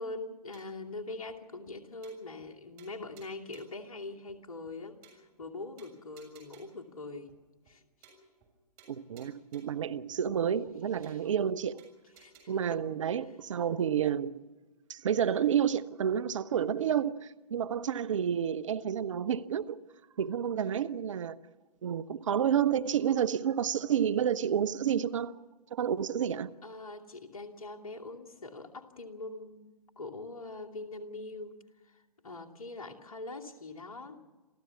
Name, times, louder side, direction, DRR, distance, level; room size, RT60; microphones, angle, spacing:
voice 1, 0.0-7.4 7.7-8.1 11.0-11.3 12.2-12.8 13.2-13.3 26.6-29.6 30.0-31.6 31.8-34.2, left 2 dB, 55° left, 2.6 m, -43 dB
sound 1, 0.5-0.9 1.3-1.4 1.7-1.8 2.0-2.5 2.8-3.8 4.3-4.4 4.7-4.8 5.0-5.5 5.8-6.9 7.3-7.4 7.7-7.8 8.0-8.5 8.8-9.9 10.3-10.4 10.7-10.8 11.0-11.5 11.8-12.4, right 4 dB, 30° right, 6.9 m, -59 dB
voice 2, 8.9-11.8 12.5-14.4 14.9-19.8 20.2-21.4 21.8-25.3 25.7-26.5, right 8 dB, 50° right, 0.8 m, -30 dB
28.0 x 15.0 x 7.1 m
figure-of-eight pair, 125°, 21 cm